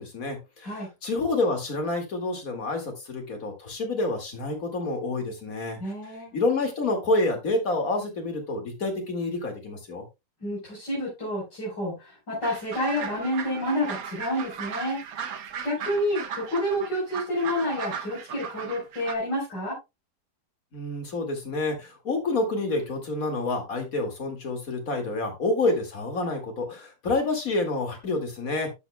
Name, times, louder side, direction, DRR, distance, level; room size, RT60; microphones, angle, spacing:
voice 1, 0.0-5.8 6.3-10.0 20.7-28.7, left 2 dB, 55° left, 4 dB, 2.7 m, -28 dB
voice 2, 5.8-6.3 10.4-15.0 15.6-19.8, equal, 90° left, -6 dB, 5.0 m, -29 dB
sound 1, 12.4-19.2, right 7 dB, 60° right, 1.3 m, -37 dB
11.5 x 7.7 x 2.3 m, 0.23 s
omnidirectional pair, 1.8 m